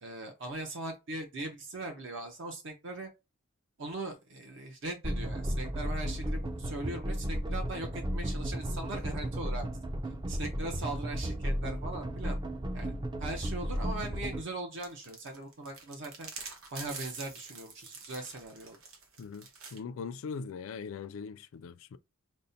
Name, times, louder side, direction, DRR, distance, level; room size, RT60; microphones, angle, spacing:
voice 1, 0.0-3.1 3.8-9.7 10.3-12.4 12.7-12.9 13.2-16.3 16.7-18.8, right 2 dB, 60° right, 0.7 m, -40 dB
sound 1, 5.0-14.4, equal, 20° right, 0.4 m, -34 dB
sound 2, 14.8-19.8, right 4 dB, 75° right, 1.1 m, -46 dB
voice 2, 19.2-22.0, left 5 dB, 70° left, 0.3 m, -41 dB
5.2 x 2.1 x 2.7 m
head